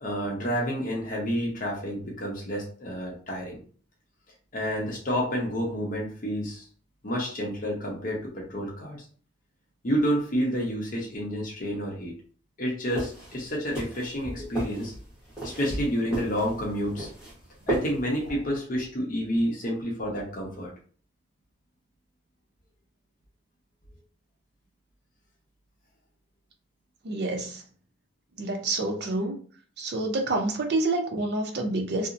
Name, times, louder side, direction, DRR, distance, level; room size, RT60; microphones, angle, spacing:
voice 1, 0.0-3.6 4.5-6.7 7.0-9.0 9.8-12.1 12.6-14.9 15.4-17.1 17.7-20.7, equal, 45° left, -3 dB, 0.7 m, -29 dB
sound 1, 12.9-18.3, right 1 dB, 5° right, 1.0 m, -36 dB
voice 2, 27.0-27.6 28.4-29.4 29.8-32.1, right 2 dB, 55° right, 4 dB, 0.5 m, -28 dB
2.8 x 2.0 x 2.5 m, 0.44 s
head